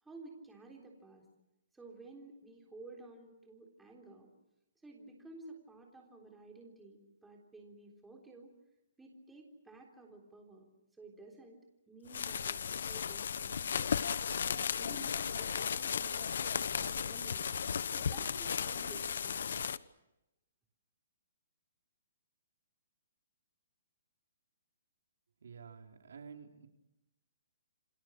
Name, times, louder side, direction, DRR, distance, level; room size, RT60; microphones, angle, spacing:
voice 1, 0.0-1.3 1.7-4.3 4.8-8.5 9.0-10.7 11.0-13.9 14.5-17.5 17.9-19.5, right 2 dB, 5° right, 0 dB, 3.7 m, -53 dB
sound 1, 12.1-19.8, left 7 dB, 65° left, 1.1 m, -35 dB
voice 2, 25.4-26.7, right 6 dB, 75° right, 4 dB, 4.0 m, -51 dB
29.0 x 25.5 x 6.4 m, 0.92 s
hypercardioid pair, 170°, 0 cm